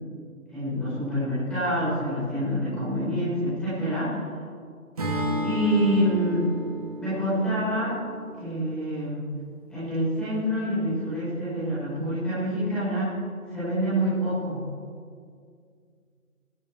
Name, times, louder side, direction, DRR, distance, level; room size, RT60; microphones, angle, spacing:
voice 1, 0.5-4.2 5.4-6.5 7.0-7.9 8.4-9.3 9.7-13.1 13.5-14.6, equal, ahead, -14 dB, 5.2 m, -26 dB
Acoustic guitar / Strum, 5.0-9.2, right 1 dB, 25° right, 2.6 m, -32 dB
26.0 x 12.5 x 3.5 m, 2.2 s
figure-of-eight pair, 165°, 44 cm